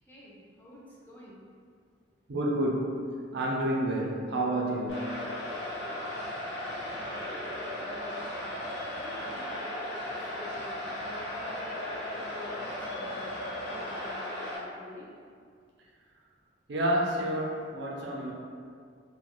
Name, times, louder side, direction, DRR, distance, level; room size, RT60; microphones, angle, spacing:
voice 1, 0.0-1.4 7.7-8.3 8.9-9.8 10.3-13.3 13.7-15.0, left 1 dB, 10° left, -7 dB, 0.6 m, -49 dB
voice 2, 2.3-5.2 16.7-18.3, right 1 dB, 65° right, -2 dB, 0.5 m, -29 dB
sound 1, 4.9-14.6, left 1 dB, 65° left, 0.6 m, -36 dB
2.8 x 2.2 x 2.9 m, 2.2 s
head